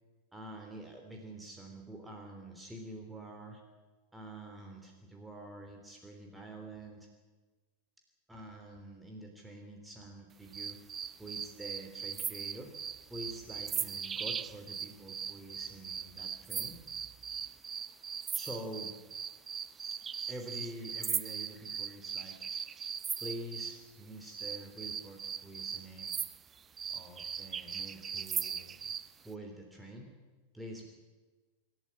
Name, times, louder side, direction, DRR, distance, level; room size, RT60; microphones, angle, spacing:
voice 1, 0.3-3.6 4.1-7.1 8.3-10.8 11.2-12.7 13.1-16.8 18.3-18.9 20.3-22.4 23.2-26.1 26.9-28.8 29.2-30.1 30.5-30.9, right 1 dB, 5° right, 2 dB, 3.2 m, -47 dB
sound 1, 10.5-23.8 24.3-29.1, right 7 dB, 20° right, 0.6 m, -39 dB
26.5 x 12.0 x 10.0 m, 1.3 s
figure-of-eight pair, 90°, 0 cm